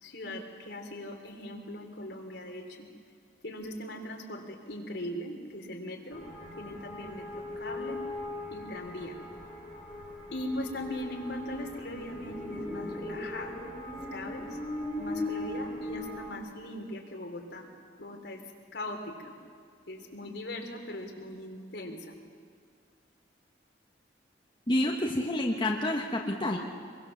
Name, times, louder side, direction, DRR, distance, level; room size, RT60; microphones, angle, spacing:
voice 1, 0.0-2.9 3.4-6.2 6.6-8.0 8.5-9.2 10.3-13.6 14.1-14.6 15.0-17.7 18.0-18.4 18.7-19.3 19.9-22.1, left 1 dB, 65° left, 2 dB, 3.3 m, -39 dB
sound 1, 6.1-16.2, left 2 dB, 10° right, 7.1 m, -39 dB
voice 2, 24.7-26.6, left 1 dB, 25° left, 0 dB, 1.4 m, -28 dB
25.0 x 23.0 x 7.3 m, 2.2 s
head